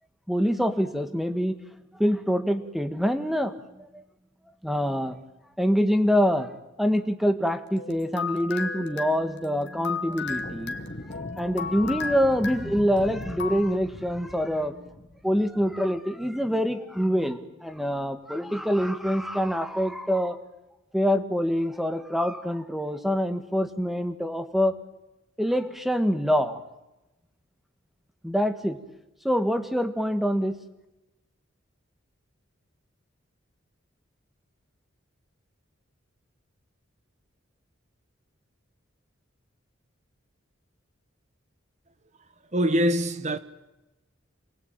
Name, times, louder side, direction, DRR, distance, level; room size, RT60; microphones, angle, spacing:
voice 1, 0.3-1.6 1.9-4.0 4.6-5.2 5.6-6.5 6.8-10.8 11.1-14.9 15.2-20.4 20.9-24.8 25.4-26.6 28.2-28.8 29.2-30.6, equal, ahead, 8 dB, 1.8 m, -25 dB
sound 1, 7.8-13.6, left 5 dB, 60° left, 2.3 m, -35 dB
sound 2, 10.2-15.8, left 1 dB, 45° left, 1.5 m, -41 dB
voice 2, 42.5-43.4, equal, 35° right, 12 dB, 1.5 m, -23 dB
28.0 x 21.5 x 9.0 m, 0.98 s
head